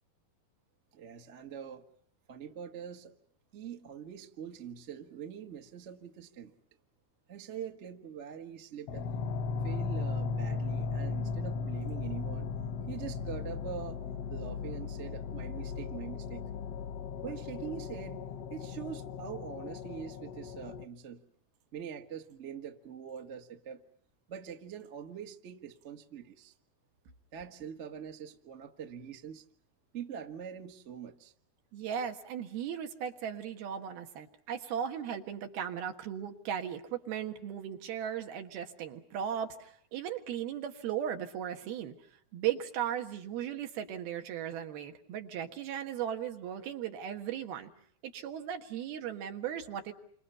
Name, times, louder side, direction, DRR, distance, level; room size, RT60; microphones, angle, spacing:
voice 1, 0.9-1.9 2.3-3.1 3.5-6.5 7.3-9.1 9.6-12.5 12.8-14.0 14.3-16.4 17.2-18.2 18.5-21.2 21.7-23.8 24.3-26.5 27.3-29.4 29.9-31.3, right 8 dB, 60° right, 4 dB, 0.7 m, -43 dB
sound 1, 8.9-20.9, left 5 dB, 65° left, 1.6 m, -37 dB
voice 2, 31.7-41.9 42.3-47.7 48.0-49.9, right 9 dB, 85° right, 5 dB, 3.7 m, -37 dB
29.0 x 25.5 x 5.6 m, 0.63 s
omnidirectional pair, 4.3 m